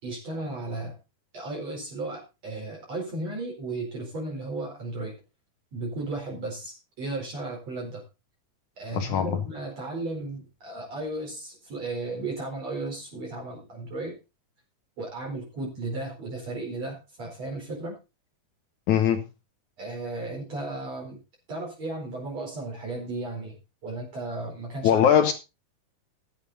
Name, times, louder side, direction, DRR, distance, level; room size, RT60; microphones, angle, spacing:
voice 1, 0.0-1.0 1.3-5.1 5.7-8.0 8.8-14.1 15.0-18.0 19.8-21.2 21.5-23.6 23.8-25.1, right 2 dB, 40° right, -1 dB, 5.6 m, -35 dB
voice 2, 8.9-9.4 18.9-19.3 24.8-25.3, left 9 dB, 65° left, 9 dB, 2.0 m, -21 dB
14.0 x 10.0 x 4.1 m, 0.28 s
omnidirectional pair, 4.5 m